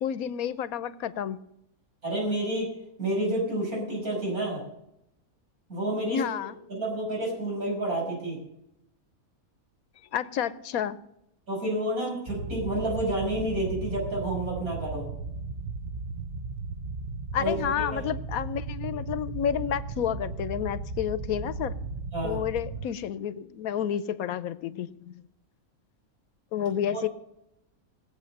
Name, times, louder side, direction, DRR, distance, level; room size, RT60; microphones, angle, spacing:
voice 1, 0.0-1.4 6.1-6.6 10.1-11.0 17.3-21.8 22.2-25.2 26.5-27.1, left 9 dB, 80° left, 1.2 m, -30 dB
voice 2, 2.0-2.7 3.0-4.6 5.7-6.2 6.7-8.4 11.5-15.1 17.4-18.0 22.1-22.4 26.9-27.1, right 1 dB, 75° right, 6.5 m, -29 dB
sound 1, 12.3-22.9, right 3 dB, 45° right, 1.0 m, -36 dB
19.0 x 8.0 x 6.6 m
omnidirectional pair, 1.5 m